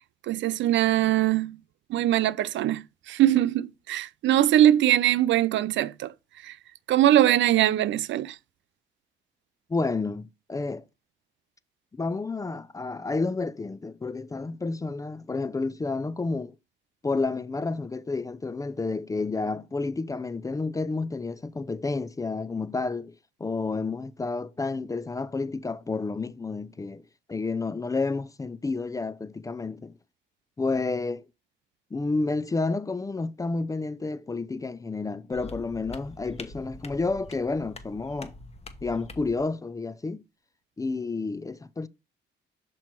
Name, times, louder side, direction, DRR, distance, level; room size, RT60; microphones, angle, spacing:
voice 1, 0.3-1.6 1.9-6.1 6.4-6.6 6.9-8.4, right 13 dB, 70° right, 0.4 m, -22 dB
voice 2, 9.7-10.8 11.9-16.5 17.0-23.1 23.4-27.0 27.3-29.9 30.6-31.2 31.9-38.3 38.8-40.2 40.8-41.9, left 3 dB, 15° left, 0.4 m, -30 dB
sound 1, 35.3-39.4, left 2 dB, 30° left, 1.1 m, -44 dB
6.1 x 4.5 x 4.3 m
cardioid pair, 90°, 20 cm